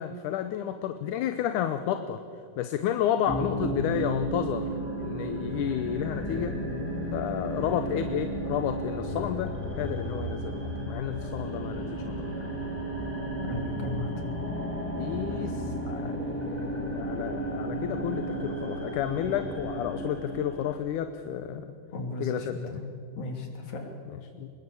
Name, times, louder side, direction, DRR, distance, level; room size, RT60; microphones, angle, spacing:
voice 1, 0.0-2.2 2.6-4.7 5.0-6.6 7.1-12.5 15.0-21.7 22.2-22.8 24.1-24.5, left 9 dB, 75° left, 9 dB, 2.3 m, -31 dB
sound 1, 3.3-20.7, right 1 dB, 5° left, 3.1 m, -33 dB
voice 2, 13.4-14.1 15.3-15.5 21.9-22.8 23.2-23.8, left 3 dB, 60° left, 2 dB, 4.5 m, -35 dB
26.0 x 21.5 x 8.6 m, 2.4 s
omnidirectional pair, 3.7 m